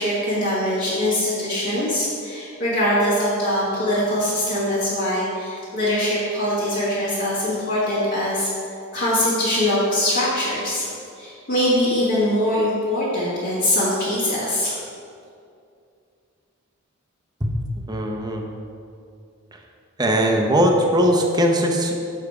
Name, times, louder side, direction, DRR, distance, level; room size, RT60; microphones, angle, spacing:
voice 1, 0.0-8.5 8.9-10.9 11.2-14.8, left 1 dB, 50° left, -11 dB, 1.8 m, -22 dB
voice 2, 17.9-18.4 20.0-21.9, equal, 20° right, 1 dB, 0.8 m, -19 dB
7.1 x 6.0 x 4.8 m, 2.4 s
head